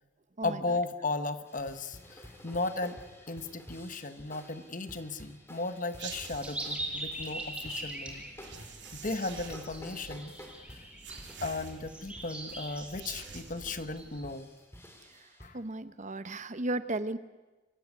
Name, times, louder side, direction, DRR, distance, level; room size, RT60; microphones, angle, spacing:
voice 1, 0.4-8.3 8.9-10.3 10.6-10.8 11.4-14.5 15.4-15.6, left 3 dB, 45° left, 10 dB, 1.3 m, -36 dB
sound 1, 1.5-15.5, left 1 dB, 15° left, 3.2 m, -52 dB
sound 2, 6.0-6.8 8.4-9.8 11.0-12.1 12.8-13.7, right 6 dB, 65° right, 3.5 m, -46 dB
sound 3, 6.4-14.3, right 1 dB, 5° right, 5.1 m, -42 dB
voice 2, 15.5-17.2, right 2 dB, 40° right, 12 dB, 0.9 m, -34 dB
26.0 x 15.0 x 9.7 m, 1.2 s
head